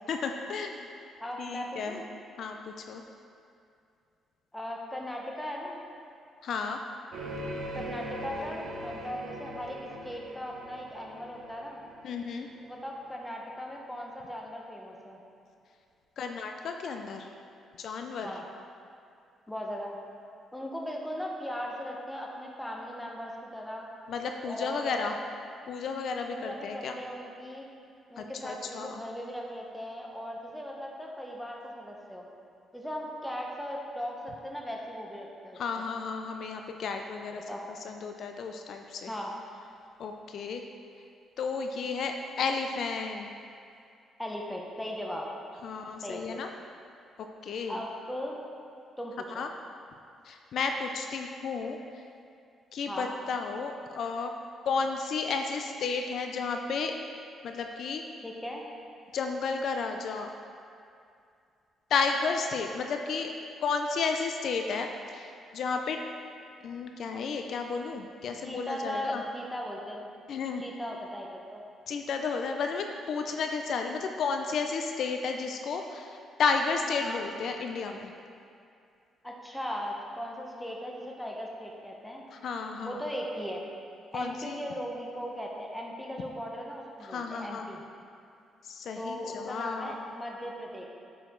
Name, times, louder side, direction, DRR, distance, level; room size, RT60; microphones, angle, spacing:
voice 1, 0.1-0.9 1.4-2.0 2.4-3.0 6.4-6.8 12.0-12.5 16.2-17.3 17.8-18.3 24.1-25.2 25.7-27.0 28.2-29.0 35.5-37.4 37.7-39.1 40.0-40.6 41.4-43.3 45.6-46.5 47.2-47.8 49.3-49.5 50.2-52.0 52.7-54.3 54.7-56.9 57.4-58.0 59.1-60.3 61.9-63.3 63.6-66.0 66.6-69.2 70.3-70.6 71.9-78.1 82.3-83.0 84.1-84.6 87.0-87.7 88.6-89.9, left 5 dB, 65° left, 4 dB, 0.4 m, -32 dB
voice 2, 1.2-2.1 4.5-5.8 7.7-11.8 12.6-15.2 18.2-18.4 19.5-20.0 20.5-23.9 24.5-25.1 26.2-27.7 28.1-32.3 32.7-35.6 37.5-37.7 39.1-39.3 44.2-45.2 46.0-46.4 47.7-48.4 49.0-49.4 52.9-53.1 58.2-58.7 68.4-70.0 70.6-71.6 77.0-77.3 79.2-82.2 82.8-83.6 84.1-87.8 88.9-90.9, equal, 5° left, -1 dB, 1.1 m, -38 dB
sound 1, 7.1-12.7, equal, 70° right, 1.2 m, -41 dB
8.7 x 5.0 x 3.8 m, 2.4 s
cardioid pair, 90°, 0 cm